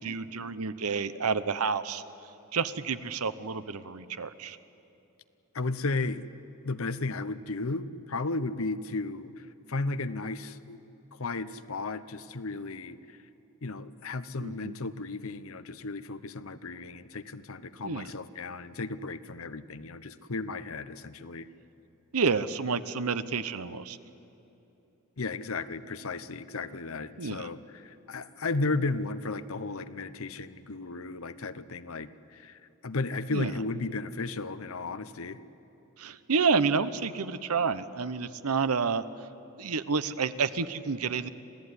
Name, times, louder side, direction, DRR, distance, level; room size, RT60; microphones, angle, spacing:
voice 1, 0.0-2.0 2.5-4.6 14.4-14.7 17.8-18.1 22.1-24.0 27.2-27.5 33.3-33.5 36.0-39.0 39.6-41.3, right 5 dB, 85° right, 13 dB, 0.9 m, -29 dB
voice 2, 5.5-6.2 6.6-10.8 11.2-13.2 13.6-21.5 25.2-35.4, left 3 dB, 70° left, 13 dB, 0.9 m, -34 dB
26.5 x 16.0 x 9.7 m, 2.9 s
head